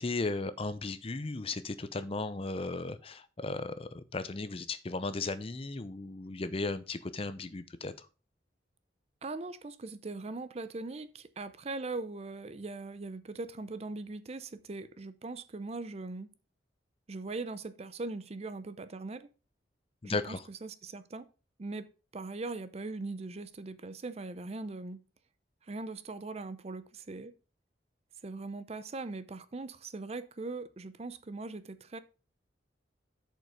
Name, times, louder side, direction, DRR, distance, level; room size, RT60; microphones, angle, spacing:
voice 1, 0.0-8.1 20.0-20.4, left 3 dB, 30° left, 0.6 m, -36 dB
voice 2, 9.2-16.3 17.1-19.3 20.0-21.3 21.6-25.0 25.6-27.3 28.2-32.0, right 3 dB, 35° right, 0.5 m, -40 dB
7.4 x 5.4 x 5.0 m
head